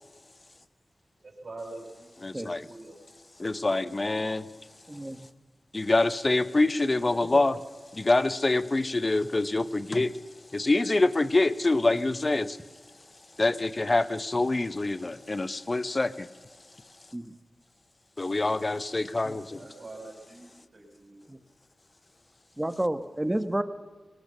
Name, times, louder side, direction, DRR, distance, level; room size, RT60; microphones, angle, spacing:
voice 1, 1.2-3.0 19.5-21.3, right 2 dB, 60° right, 2 dB, 6.0 m, -45 dB
voice 2, 2.2-2.6 3.4-4.4 5.7-7.6 7.9-10.2 10.5-12.6 13.4-16.3 18.2-19.6, left 2 dB, 35° left, 14 dB, 0.9 m, -25 dB
voice 3, 4.9-5.3 7.3-7.4 17.1-17.2 19.2-19.3 21.3-21.4 22.6-23.6, right 1 dB, 15° right, 10 dB, 1.4 m, -30 dB
22.0 x 19.0 x 6.9 m, 1.4 s
cardioid pair, 60°, 0 cm